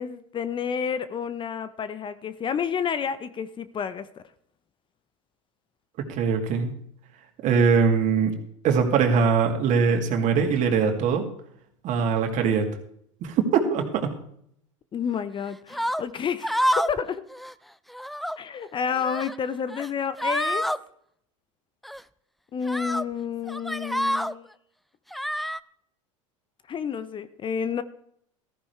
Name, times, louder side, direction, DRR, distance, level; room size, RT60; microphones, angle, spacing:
voice 1, 0.0-4.2 14.9-16.5 16.9-17.2 18.4-20.7 22.5-24.5 26.7-27.8, left 7 dB, 30° left, 0.8 m, -30 dB
voice 2, 6.0-6.7 7.4-8.3 8.6-11.3 11.8-12.7 13.2-14.2, right 5 dB, 50° right, 2.5 m, -22 dB
sound 1, 15.7-16.0 16.4-17.0 17.3-17.5 17.9-18.4 18.9-19.4 19.7-19.9 20.2-20.8 21.8-22.0 22.7-23.0 23.5-24.3 25.1-25.6, equal, ahead, 0.4 m, -27 dB
14.5 x 14.5 x 3.3 m
hypercardioid pair, 85°, 17 cm